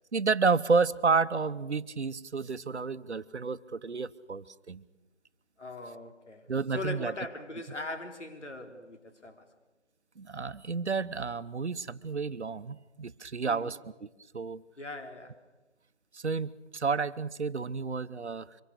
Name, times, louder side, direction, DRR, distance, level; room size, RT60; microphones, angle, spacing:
voice 1, 0.1-4.8 6.5-7.1 10.2-14.1 14.3-14.6 16.1-18.6, right 4 dB, 70° right, 1.0 m, -30 dB
voice 2, 5.6-6.5 6.7-9.5 13.4-13.7 14.8-15.4, left 2 dB, 75° left, 3.5 m, -40 dB
25.0 x 23.5 x 6.7 m
figure-of-eight pair, 170°, 36 cm